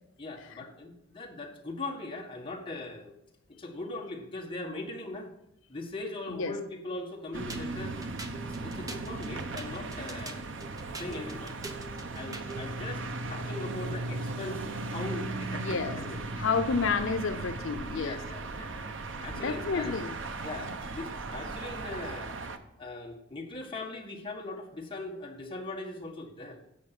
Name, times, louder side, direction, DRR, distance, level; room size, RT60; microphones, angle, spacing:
voice 1, 0.2-3.1 3.5-5.3 5.7-8.0 8.5-10.4 11.0-11.5 12.1-16.2 17.9-18.9 19.2-20.0 20.4-22.3 22.8-26.6, left 2 dB, 25° left, 0 dB, 1.7 m, -40 dB
sound 1, 7.3-22.6, right 2 dB, 80° right, 0.9 m, -37 dB
sound 2, 7.5-12.7, right 2 dB, 20° right, 0.9 m, -44 dB
voice 2, 15.5-16.0 16.4-18.2 19.4-20.2, left 5 dB, 85° left, 9 dB, 0.7 m, -30 dB
11.0 x 7.7 x 6.0 m, 0.80 s
head